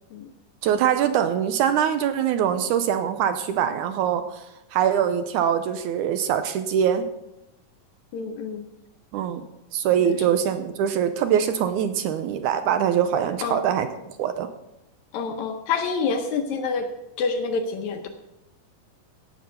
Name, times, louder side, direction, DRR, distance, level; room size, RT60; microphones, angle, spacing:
voice 1, 0.6-4.5 4.7-7.1 9.1-9.4 9.7-13.9 14.2-14.5, right 9 dB, 80° right, 9 dB, 1.9 m, -23 dB
voice 2, 8.1-8.6 10.0-10.2 13.4-13.6 15.1-16.9 17.2-18.1, left 5 dB, 75° left, 6 dB, 1.8 m, -27 dB
16.0 x 6.0 x 5.6 m, 0.91 s
omnidirectional pair, 3.8 m